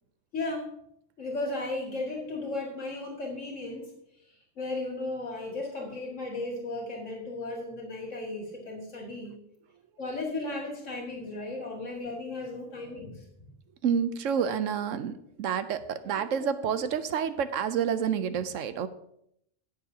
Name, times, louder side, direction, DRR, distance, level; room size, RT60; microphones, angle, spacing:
voice 1, 0.3-0.8 1.2-3.9 4.6-9.4 10.0-13.3, left 2 dB, 75° left, -1 dB, 2.5 m, -35 dB
voice 2, 13.8-18.9, right 7 dB, 85° right, 12 dB, 1.1 m, -29 dB
19.0 x 6.7 x 2.8 m, 0.74 s
omnidirectional pair, 1.3 m